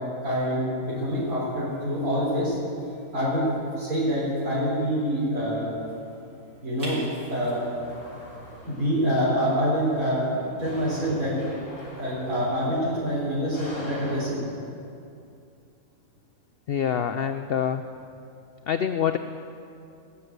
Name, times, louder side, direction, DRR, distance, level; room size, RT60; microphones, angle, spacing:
voice 1, 0.2-2.6 3.1-3.5 3.8-5.7 6.6-7.0 7.3-7.6 8.6-11.3 12.0-14.4, equal, 70° right, -8 dB, 4.3 m, -26 dB
sound 1, 0.8-8.6, right 1 dB, 90° right, 3.3 m, -48 dB
sound 2, 7.0-14.2, left 1 dB, 55° left, 3.6 m, -44 dB
voice 2, 16.7-17.8 18.7-19.2, left 8 dB, 85° left, 9 dB, 0.5 m, -25 dB
18.5 x 7.1 x 8.0 m, 2.6 s
omnidirectional pair, 1.6 m